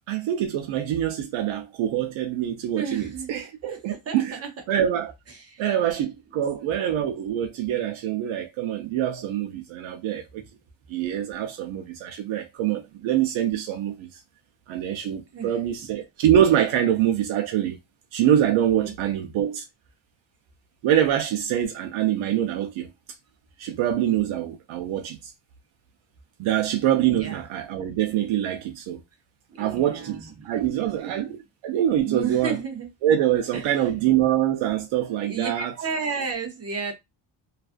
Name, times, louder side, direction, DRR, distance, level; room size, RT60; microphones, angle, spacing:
voice 1, 0.1-4.3 4.7-5.1 5.6-10.4 10.9-14.1 14.7-17.8 18.1-19.6 20.8-22.9 23.6-25.2 26.4-29.0 29.6-32.6 33.0-35.7, right 11 dB, 85° right, 0.6 m, -24 dB
voice 2, 2.8-3.3 3.6-4.5 5.3-5.7 6.6-6.7 15.3-15.6 18.8-19.2 22.3-22.4 27.2-27.5 29.5-31.4 32.0-32.9 33.5-33.9 35.2-36.9, right 5 dB, 35° right, 0.5 m, -33 dB
2.4 x 2.3 x 2.4 m
cardioid pair, 175°, 46 cm